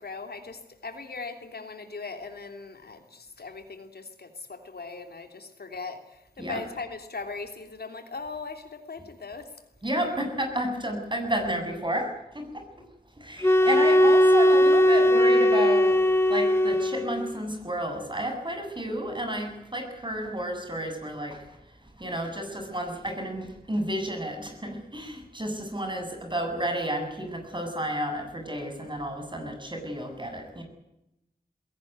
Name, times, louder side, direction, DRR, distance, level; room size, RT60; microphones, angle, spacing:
voice 1, 0.0-9.5, left 4 dB, 85° left, 6 dB, 3.2 m, -39 dB
voice 2, 9.8-12.6 13.2-16.0 16.3-21.5 22.0-30.6, right 1 dB, 30° right, 4 dB, 7.8 m, -31 dB
sound 1, 13.4-17.3, left 1 dB, 15° left, 1.5 m, -19 dB
21.0 x 17.5 x 9.5 m, 0.86 s
wide cardioid pair, 75°, 16 cm